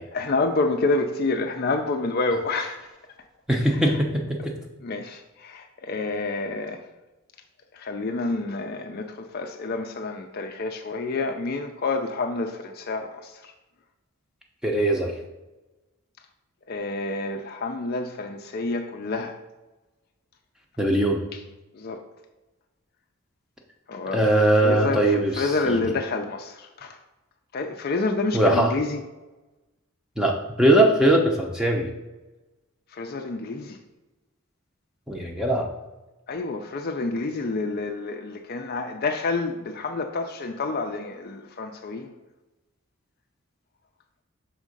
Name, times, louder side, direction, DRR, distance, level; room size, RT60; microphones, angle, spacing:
voice 1, 0.1-2.9 3.7-4.0 4.8-6.8 7.7-13.5 16.7-19.4 21.3-21.4 21.7-22.0 23.9-24.2 24.6-27.0 27.5-29.0 32.9-33.8 36.3-42.1, left 3 dB, 45° left, 5 dB, 0.4 m, -28 dB
voice 2, 3.5-4.5 14.6-15.1 20.8-21.2 24.1-25.8 28.3-28.7 30.2-31.9 35.1-35.7, right 1 dB, 5° right, 0 dB, 0.7 m, -21 dB
6.4 x 3.6 x 5.2 m, 1.1 s
head